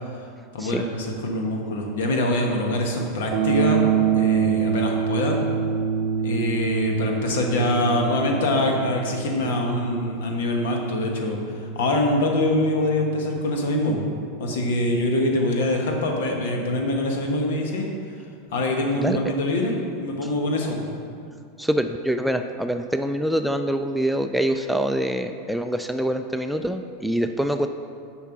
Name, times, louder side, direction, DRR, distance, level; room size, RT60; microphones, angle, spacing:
voice 1, 0.5-3.8 4.1-5.4 6.2-14.1 14.4-17.9 18.5-20.8, left 1 dB, 75° left, 1 dB, 1.3 m, -24 dB
sound 1, 3.3-13.4, right 7 dB, 60° right, 0.6 m, -26 dB
voice 2, 21.6-27.7, right 1 dB, ahead, 7 dB, 0.3 m, -25 dB
7.2 x 4.7 x 5.8 m, 2.3 s
hypercardioid pair, 110°, 0 cm